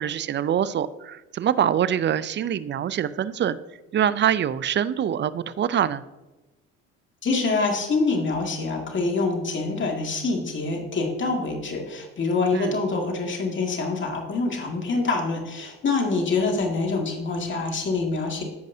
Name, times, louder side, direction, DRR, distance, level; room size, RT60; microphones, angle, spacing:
voice 1, 0.0-3.6 3.9-6.0 12.5-12.7, right 9 dB, 40° right, 16 dB, 0.5 m, -24 dB
voice 2, 7.2-18.4, left 3 dB, 40° left, 1 dB, 2.2 m, -25 dB
14.0 x 5.3 x 2.7 m, 1.1 s
supercardioid pair, 80°, 29 cm